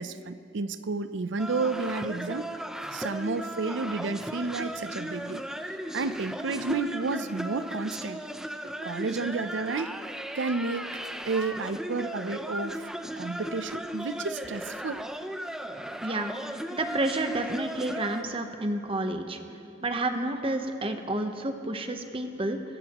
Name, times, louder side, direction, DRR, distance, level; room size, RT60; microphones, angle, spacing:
voice 1, 0.0-2.5 2.9-5.4 5.9-8.2 8.7-9.9 10.3-12.9 13.2-15.1, right 3 dB, 70° right, 12 dB, 0.6 m, -31 dB
sound 1, 1.4-18.2, equal, 5° right, 0.5 m, -36 dB
voice 2, 16.7-19.4 19.8-22.6, right 2 dB, 30° right, 6 dB, 0.9 m, -30 dB
26.0 x 14.5 x 3.0 m, 2.9 s
head